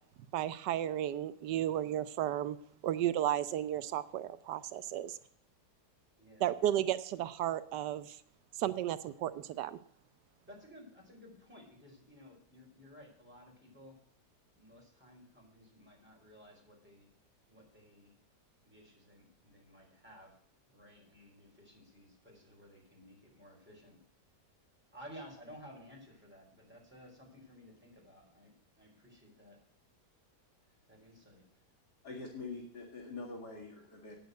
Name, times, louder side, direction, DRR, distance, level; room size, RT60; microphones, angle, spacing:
voice 1, 0.3-2.6 2.8-5.2 6.4-8.2 8.6-9.8, right 12 dB, 90° right, 12 dB, 1.2 m, -33 dB
voice 2, 6.2-6.5 10.5-14.0 14.6-17.1 17.5-18.2 18.6-20.4 20.6-24.0 24.9-29.6 30.9-31.6, equal, 5° right, -3 dB, 4.6 m, -55 dB
voice 3, 32.0-34.2, left 3 dB, 75° left, -1 dB, 2.6 m, -44 dB
9.4 x 7.7 x 7.9 m, 0.66 s
omnidirectional pair, 1.8 m